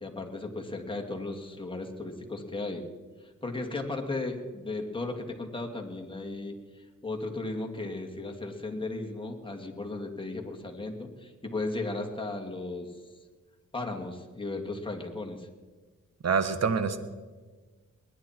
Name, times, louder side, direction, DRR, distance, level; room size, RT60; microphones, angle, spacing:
voice 1, 0.0-2.8 3.2-12.9 13.7-15.5, left 2 dB, 15° left, 2 dB, 2.5 m, -36 dB
voice 2, 16.2-17.0, right 5 dB, 50° right, 11 dB, 1.4 m, -26 dB
21.0 x 10.5 x 4.5 m, 1.4 s
cardioid pair, 65°, 32 cm